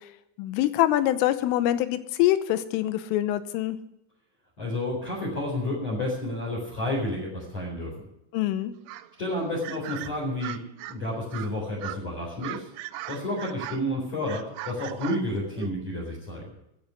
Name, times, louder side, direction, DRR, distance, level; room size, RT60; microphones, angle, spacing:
voice 1, 0.4-3.8 8.3-8.7, left 13 dB, 90° left, 13 dB, 3.5 m, -24 dB
voice 2, 4.6-7.9 9.2-10.6 10.9-12.7 13.1-16.5, left 1 dB, 35° left, -1 dB, 5.1 m, -30 dB
sound 1, 8.9-9.1 9.6-11.0 11.3-11.5 11.8-12.0 12.4-13.9 14.2-15.8, right 14 dB, 80° right, 3.0 m, -39 dB
14.0 x 8.6 x 9.8 m, 0.83 s
omnidirectional pair, 5.6 m